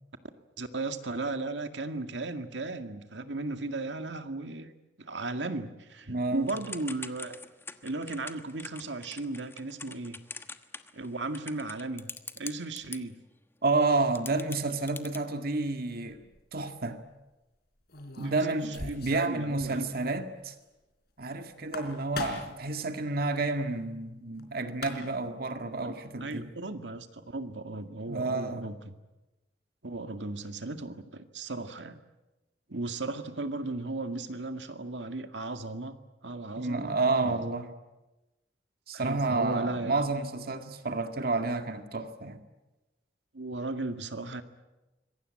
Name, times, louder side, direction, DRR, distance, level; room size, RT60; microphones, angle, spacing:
voice 1, 0.6-4.7 5.0-7.4 7.8-10.2 10.9-13.2 18.2-19.9 25.8-28.9 29.8-32.0 32.7-36.0 36.2-37.4 38.9-40.0 43.3-44.4, right 2 dB, 90° right, 2.0 m, -36 dB
voice 2, 6.1-6.5 13.6-16.2 16.5-17.0 18.2-20.5 21.2-26.5 28.1-28.7 36.6-37.7 38.9-42.4, right 3 dB, 60° right, 2.0 m, -30 dB
Typing / Telephone, 6.5-13.0 13.8-13.9 14.1-15.2, left 3 dB, 15° left, 1.3 m, -43 dB
sound 1, 16.1-16.4 17.9-19.3 19.6-19.7 20.0-20.1 21.5-22.6 24.4-24.5 24.7-25.3, left 3 dB, 60° left, 4.1 m, -39 dB
26.0 x 22.5 x 8.9 m
head